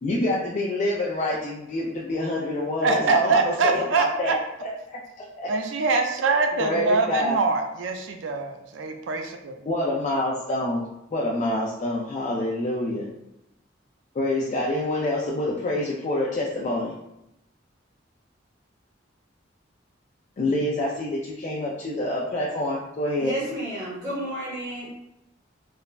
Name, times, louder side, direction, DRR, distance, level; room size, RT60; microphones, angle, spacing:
voice 1, 0.0-4.7 5.4-5.5 6.6-7.4 9.7-10.8 11.1-13.1 14.1-17.0 20.4-23.3, left 1 dB, 40° left, -5 dB, 0.3 m, -26 dB
voice 2, 2.8-4.4 5.5-9.5, right 4 dB, 75° right, 4 dB, 0.4 m, -24 dB
voice 3, 23.2-24.9, right 1 dB, 10° right, -8 dB, 0.8 m, -31 dB
3.2 x 2.1 x 2.3 m, 0.85 s
head